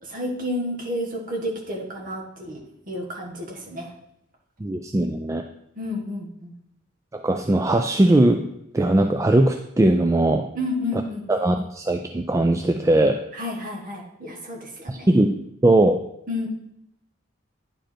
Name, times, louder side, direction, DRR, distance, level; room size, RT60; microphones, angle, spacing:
voice 1, 0.0-3.9 5.7-6.5 10.5-11.2 13.3-15.1 16.3-16.5, left 1 dB, 40° right, 0 dB, 1.6 m, -31 dB
voice 2, 4.6-5.4 7.1-8.5 8.7-10.5 11.3-13.2 14.9-16.0, right 1 dB, 15° right, 6 dB, 0.3 m, -20 dB
10.0 x 5.0 x 4.4 m, 0.79 s
head